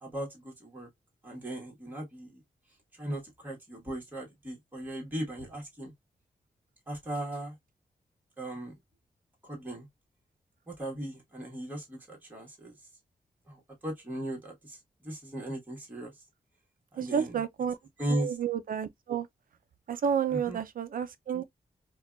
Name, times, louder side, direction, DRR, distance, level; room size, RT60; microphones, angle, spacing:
voice 1, 0.0-0.9 1.2-2.4 3.0-5.9 6.9-7.5 8.4-8.7 9.5-9.9 10.7-12.7 13.5-13.6 13.8-14.8 15.0-16.1 17.0-17.3 18.0-18.3 20.3-20.6, right 1 dB, 10° right, 1.3 m, -37 dB
voice 2, 17.0-17.8 18.1-19.3 19.9-21.4, right 7 dB, 65° right, 0.5 m, -30 dB
4.5 x 2.3 x 2.3 m
wide cardioid pair, 175°, 16 cm